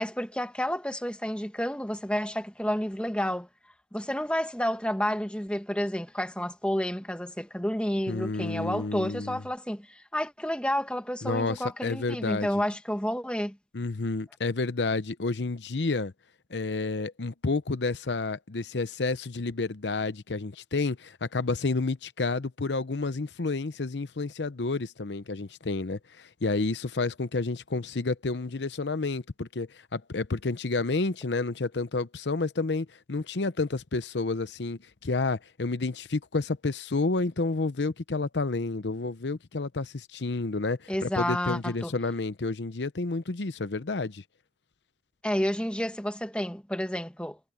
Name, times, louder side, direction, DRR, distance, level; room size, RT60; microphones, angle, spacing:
voice 1, 0.0-3.5 3.9-13.6 40.9-41.9 45.2-47.4, equal, 5° left, 1.7 m, -30 dB
voice 2, 8.1-9.4 11.2-12.5 13.7-16.1 16.5-44.2, left 3 dB, 80° left, 0.8 m, -30 dB
head